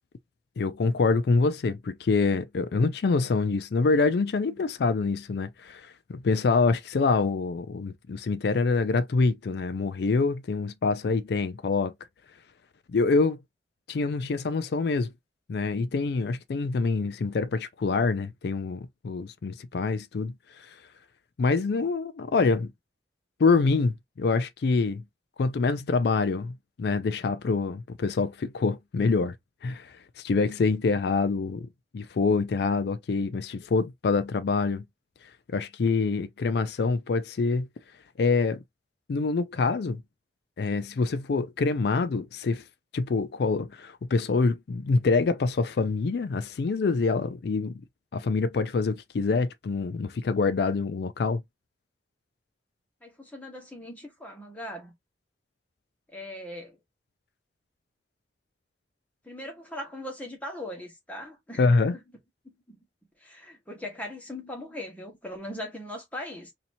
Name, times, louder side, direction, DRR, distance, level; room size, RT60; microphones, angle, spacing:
voice 1, 0.6-11.9 12.9-13.4 13.9-15.1 15.5-20.7 21.4-22.7 23.4-25.0 25.4-29.3 29.6-34.8 35.5-37.7 38.2-38.6 39.1-40.0 40.6-42.6 42.9-47.8 48.1-51.4 61.6-62.0, left 4 dB, 65° left, 0.4 m, -26 dB
voice 2, 53.0-54.9 56.1-56.8 59.2-62.0 62.4-62.8 63.2-66.5, left 1 dB, 10° left, 1.4 m, -40 dB
4.2 x 2.9 x 2.6 m
head